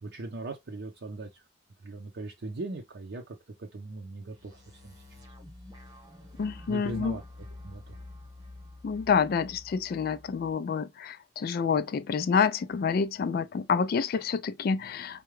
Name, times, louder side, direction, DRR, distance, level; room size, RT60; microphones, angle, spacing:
voice 1, 0.0-1.4 1.8-5.0 6.7-7.2 7.6-8.0, right 2 dB, 60° right, 0.6 m, -39 dB
sound 1, 4.3-10.5, left 2 dB, 20° right, 1.0 m, -48 dB
voice 2, 6.4-7.2 8.8-15.2, left 6 dB, 50° left, 0.3 m, -28 dB
4.7 x 2.2 x 3.0 m
head